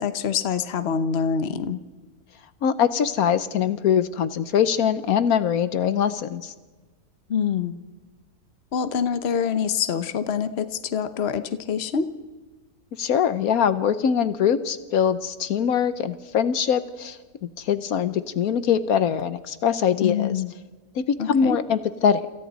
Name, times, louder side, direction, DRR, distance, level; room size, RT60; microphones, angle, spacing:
voice 1, 0.0-1.8 7.3-7.8 8.7-12.1 20.0-20.5 21.2-21.6, left 7 dB, 50° left, 11 dB, 1.1 m, -25 dB
voice 2, 2.6-6.5 13.0-20.3 20.9-22.2, left 8 dB, 75° left, 12 dB, 1.3 m, -23 dB
28.5 x 27.0 x 4.1 m, 1.3 s
omnidirectional pair, 1.6 m